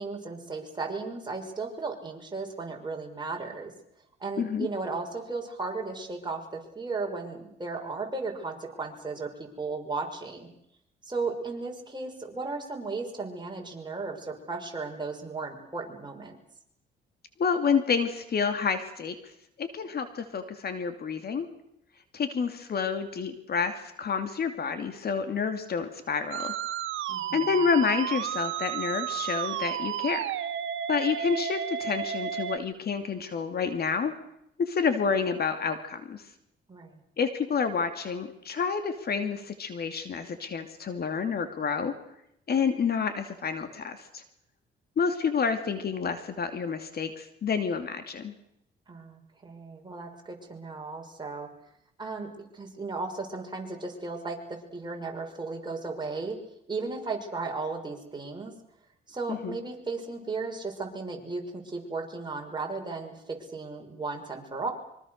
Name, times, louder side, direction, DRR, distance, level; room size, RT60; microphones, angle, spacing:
voice 1, 0.0-3.7 4.2-10.5 11.0-16.4 27.1-27.6 36.7-37.0 48.9-51.5 52.0-56.4 56.7-58.5 59.1-64.7, right 3 dB, 20° right, 1 dB, 6.1 m, -35 dB
voice 2, 4.4-4.7 17.4-19.2 19.6-21.5 22.1-26.5 27.3-30.2 30.9-34.1 34.6-36.2 37.2-41.9 42.5-44.2 45.0-48.3 59.3-59.6, left 6 dB, 50° left, 8 dB, 2.7 m, -29 dB
Musical instrument, 26.3-32.6, right 10 dB, 75° right, 1.2 m, -32 dB
25.0 x 24.5 x 6.7 m, 0.77 s
cardioid pair, 90°, 20 cm